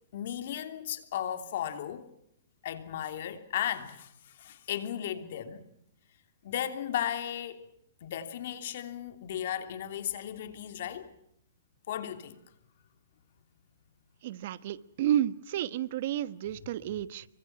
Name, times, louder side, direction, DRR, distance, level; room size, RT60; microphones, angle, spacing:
voice 1, 0.1-2.1 2.6-5.6 6.4-7.7 8.0-11.2 11.9-12.4, left 10 dB, 55° left, 3.0 m, -35 dB
voice 2, 14.2-17.3, right 11 dB, 50° right, 1.2 m, -31 dB
27.0 x 24.5 x 5.9 m
hypercardioid pair, 155°, 0 cm